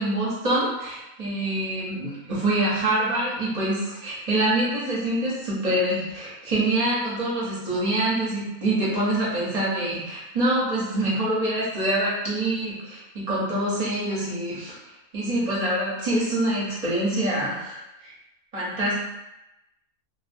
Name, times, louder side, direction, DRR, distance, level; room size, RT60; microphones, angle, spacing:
voice 1, 0.0-14.7 15.1-18.1 18.5-19.0, right 1 dB, 35° right, -7 dB, 0.7 m, -25 dB
2.4 x 2.3 x 2.5 m, 0.91 s
omnidirectional pair, 1.4 m